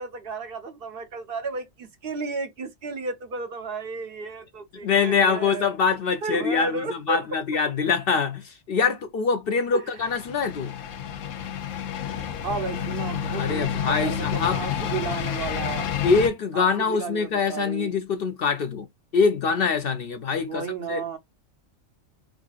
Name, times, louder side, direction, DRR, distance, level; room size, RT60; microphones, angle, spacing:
voice 1, 0.0-5.7 6.2-7.2 9.7-10.1 12.4-15.9 16.5-17.9 20.5-21.2, right 4 dB, 55° right, 0.8 m, -33 dB
voice 2, 4.8-10.7 13.4-14.6 16.0-18.9 19.1-21.0, left 5 dB, 60° left, 0.7 m, -24 dB
sound 1, 10.0-16.3, left 8 dB, 90° left, 1.0 m, -29 dB
4.8 x 2.4 x 2.3 m
omnidirectional pair, 1.3 m